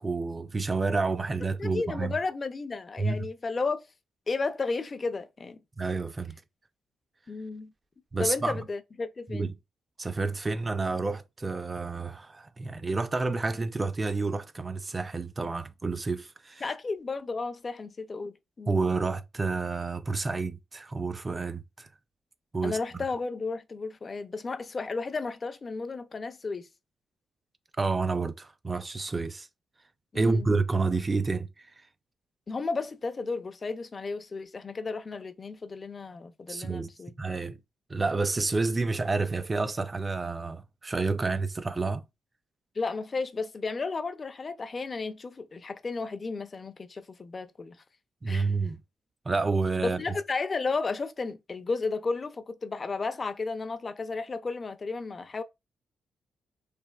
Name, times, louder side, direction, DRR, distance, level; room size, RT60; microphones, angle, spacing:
voice 1, 0.0-2.2 3.0-3.3 5.8-6.4 8.1-8.6 9.3-9.5 10.0-16.6 18.7-21.9 22.5-22.8 27.8-29.5 30.1-31.5 36.5-36.9 37.2-37.6 37.9-42.0 48.2-48.8 49.3-50.0, right 3 dB, 25° right, 0.4 m, -29 dB
voice 2, 1.6-3.9 4.3-5.6 7.3-7.7 8.2-9.5 16.6-18.8 22.6-26.7 30.1-30.5 32.5-37.1 42.8-47.8 48.3-48.5 49.8-55.4, left 4 dB, 35° left, 0.4 m, -33 dB
3.4 x 2.5 x 2.2 m
cardioid pair, 80°, 0 cm